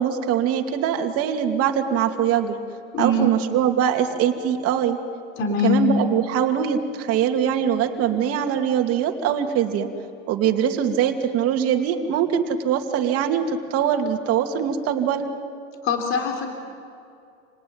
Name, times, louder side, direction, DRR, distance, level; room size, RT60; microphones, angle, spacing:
voice 1, 0.0-2.6 3.0-5.0 5.6-9.9 10.3-15.3, right 9 dB, 45° right, 4 dB, 2.6 m, -22 dB
voice 2, 2.9-3.3 5.4-5.8 15.8-16.5, left 2 dB, 40° left, 2 dB, 3.6 m, -22 dB
28.5 x 19.5 x 9.0 m, 2.5 s
supercardioid pair, 125°, 32 cm